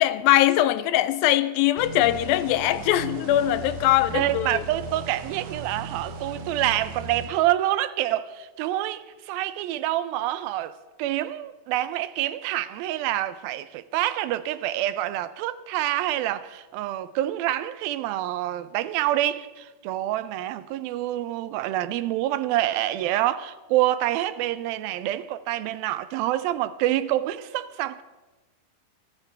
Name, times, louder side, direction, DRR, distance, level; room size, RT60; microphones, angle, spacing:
voice 1, 0.0-4.6, left 14 dB, 80° left, 2.3 m, -21 dB
sound 1, 1.8-7.3, right 4 dB, 65° right, 2.4 m, -37 dB
voice 2, 4.1-28.0, right 14 dB, 85° right, 2.5 m, -27 dB
25.0 x 14.0 x 3.4 m
omnidirectional pair, 4.2 m